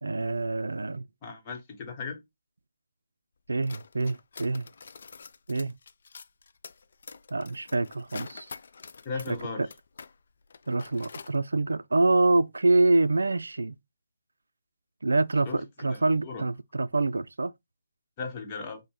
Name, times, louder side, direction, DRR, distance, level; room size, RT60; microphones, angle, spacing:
voice 1, 0.0-1.0 3.5-4.7 5.5-5.8 7.3-8.5 9.3-9.7 10.7-13.8 15.0-17.5, right 2 dB, 85° right, 0.3 m, -26 dB
voice 2, 1.2-2.2 9.0-9.7 15.5-15.6 15.9-16.5 18.2-18.8, left 4 dB, 25° left, 0.9 m, -36 dB
sound 1, 3.5-10.1 10.4-11.4, left 5 dB, 55° left, 0.3 m, -46 dB
5.1 x 2.0 x 2.9 m
figure-of-eight pair, 160°, 0 cm